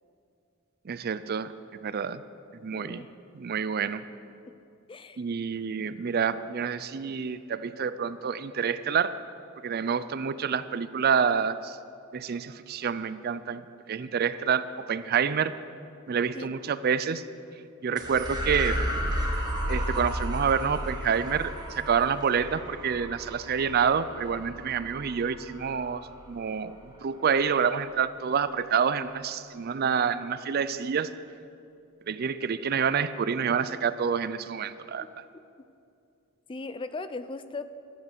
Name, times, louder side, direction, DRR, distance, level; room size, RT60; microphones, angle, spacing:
voice 1, 0.9-1.5 1.8-2.2 2.6-3.1 3.3-4.0 5.2-9.2 9.6-11.8 12.1-13.6 13.9-15.6 16.1-17.2 17.8-18.8 19.7-26.0 26.3-31.1 32.1-35.0, right 6 dB, 50° right, 14 dB, 0.4 m, -28 dB
voice 2, 2.7-3.1 4.5-4.6 4.9-5.2 16.4-16.5 36.5-37.7, left 3 dB, 25° left, 12 dB, 0.4 m, -38 dB
sound 1, 18.0-26.6, equal, 20° right, 1.6 m, -33 dB
12.5 x 10.0 x 6.7 m, 2.5 s
head